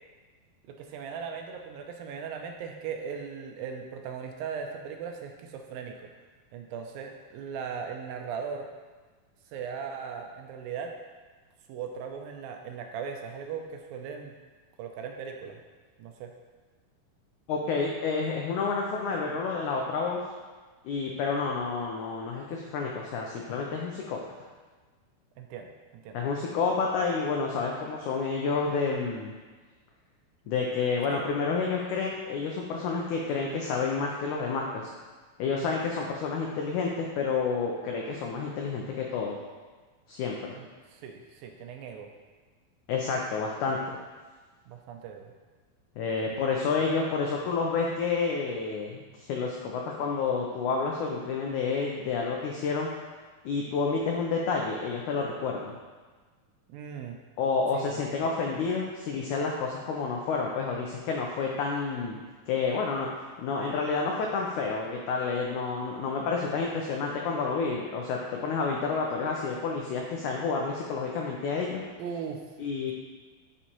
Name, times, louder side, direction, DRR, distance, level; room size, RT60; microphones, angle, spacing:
voice 1, 0.7-6.1 6.5-8.7 9.5-11.0 11.7-14.3 14.8-15.6 16.0-16.3 25.4-26.2 31.1-31.2 40.6-42.1 44.7-45.3 46.2-46.4 56.7-57.2 57.7-58.0 72.0-72.4, right 6 dB, 80° right, 3 dB, 2.2 m, -38 dB
voice 2, 17.5-20.2 20.8-24.2 26.1-29.3 30.5-34.9 35.4-39.4 40.1-40.6 42.9-44.0 46.0-52.9 53.5-55.7 57.4-62.2 62.5-63.1 63.4-71.8 72.6-72.9, left 4 dB, 85° left, -1 dB, 1.7 m, -29 dB
9.6 x 5.5 x 2.9 m, 1.4 s
omnidirectional pair, 4.3 m